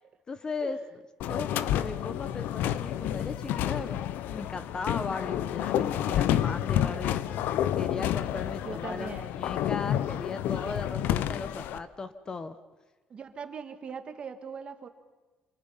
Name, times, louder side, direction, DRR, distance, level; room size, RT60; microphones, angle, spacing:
voice 1, 0.3-0.8 1.3-3.9 4.3-7.2 7.7-12.6, left 4 dB, 25° left, 12 dB, 1.0 m, -37 dB
sound 1, 1.2-11.8, left 11 dB, 75° left, 0.8 m, -29 dB
voice 2, 8.6-9.4 10.6-10.8 13.1-14.9, right 6 dB, 35° right, 8 dB, 1.7 m, -41 dB
28.0 x 27.0 x 5.7 m, 1.2 s
cardioid pair, 170°, 3 cm